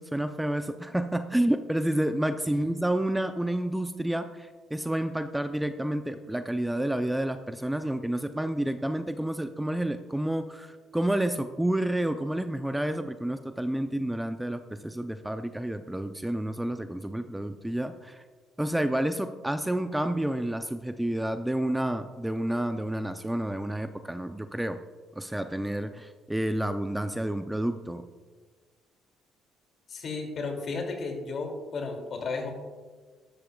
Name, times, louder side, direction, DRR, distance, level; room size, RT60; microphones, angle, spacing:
voice 1, 0.0-18.2 18.6-24.8 25.2-28.0, right 1 dB, 5° right, 9 dB, 0.6 m, -29 dB
voice 2, 29.9-32.5, left 4 dB, 55° left, 2 dB, 2.7 m, -33 dB
13.0 x 12.5 x 2.4 m, 1.4 s
hypercardioid pair, 60°, 0 cm